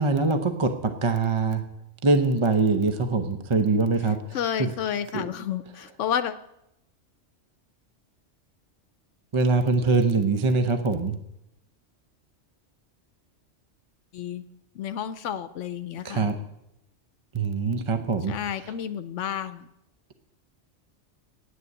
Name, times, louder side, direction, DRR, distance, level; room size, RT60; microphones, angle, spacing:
voice 1, 0.0-1.6 2.0-4.7 5.1-5.2 9.3-11.2 16.0-16.4 17.3-18.3 18.6-18.7, right 3 dB, 30° right, 7 dB, 0.7 m, -23 dB
voice 2, 4.3-6.4 14.1-14.4 14.8-16.3 18.3-19.7, left 9 dB, 80° left, 12 dB, 1.0 m, -31 dB
9.6 x 9.2 x 8.5 m, 0.84 s
omnidirectional pair, 1.2 m